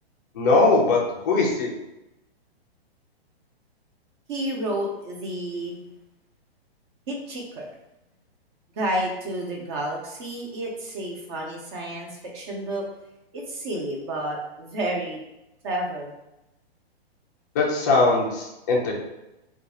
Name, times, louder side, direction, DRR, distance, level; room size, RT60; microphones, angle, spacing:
voice 1, 0.3-1.0 1.2-1.7 17.5-18.9, left 3 dB, 20° left, -2 dB, 0.4 m, -20 dB
voice 2, 4.3-5.8 7.1-7.6 8.8-12.9 13.3-15.2 15.6-16.1, right 1 dB, 25° right, 0 dB, 0.6 m, -30 dB
2.6 x 2.4 x 4.1 m, 0.92 s
hypercardioid pair, 160°, 32 cm